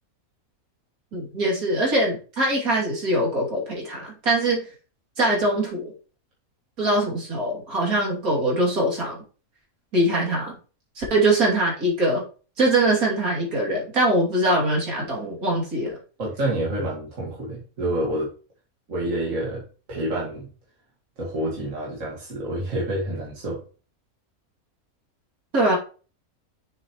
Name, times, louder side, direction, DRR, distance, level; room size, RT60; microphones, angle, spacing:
voice 1, 1.1-4.6 5.2-5.9 6.8-9.2 9.9-10.5 11.0-12.2 12.6-16.0 25.5-25.8, right 1 dB, 75° right, -2 dB, 3.3 m, -22 dB
voice 2, 16.2-18.3 18.9-19.6 19.9-20.5 21.2-23.6, right 1 dB, 60° right, -4 dB, 2.4 m, -28 dB
7.1 x 6.8 x 3.1 m, 0.37 s
omnidirectional pair, 1.6 m